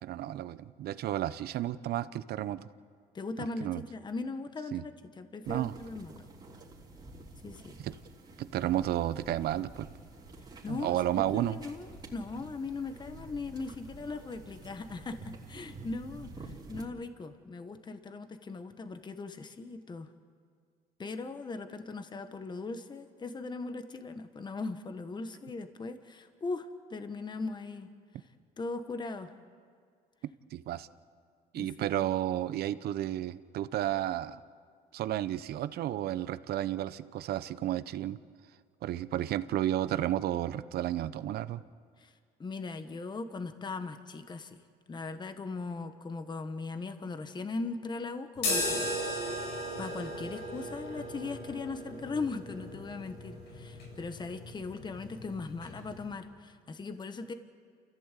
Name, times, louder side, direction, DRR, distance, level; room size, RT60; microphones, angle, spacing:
voice 1, 0.0-2.7 3.6-3.8 4.7-4.8 5.5-5.7 7.8-7.9 8.4-9.9 10.7-11.6 30.5-30.9 31.5-34.4 34.9-38.2 38.8-41.6, right 12 dB, 70° right, 14 dB, 0.8 m, -32 dB
voice 2, 3.1-6.3 7.4-7.8 10.6-11.0 11.3-20.1 21.0-27.9 28.6-29.3 31.5-32.0 42.0-42.1 42.4-44.6 44.9-49.3 49.8-57.3, left 3 dB, 25° left, 9 dB, 1.3 m, -39 dB
sound 1, 5.4-16.9, right 3 dB, 25° right, 3.6 m, -48 dB
sound 2, 48.4-56.1, left 1 dB, 80° left, 7.6 m, -37 dB
29.0 x 15.0 x 8.3 m, 2.1 s
cardioid pair, 110°, 17 cm